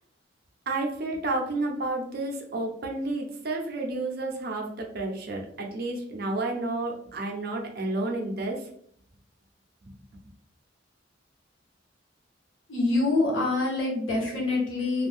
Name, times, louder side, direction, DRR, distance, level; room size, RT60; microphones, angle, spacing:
voice 1, 0.7-8.7, right 2 dB, 55° right, 1 dB, 0.6 m, -31 dB
voice 2, 12.7-15.1, left 2 dB, 85° left, -3 dB, 1.1 m, -25 dB
2.5 x 2.3 x 3.4 m, 0.66 s
head